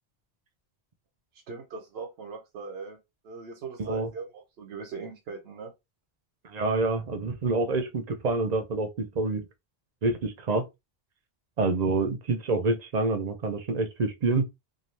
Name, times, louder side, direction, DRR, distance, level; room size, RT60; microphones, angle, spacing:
voice 1, 1.5-3.0 3.2-5.7, right 5 dB, 90° right, 0.9 m, -40 dB
voice 2, 3.8-4.1 6.4-9.5 10.0-10.6 11.6-14.5, right 3 dB, 50° right, 0.6 m, -27 dB
2.6 x 2.5 x 3.1 m
omnidirectional pair, 1.0 m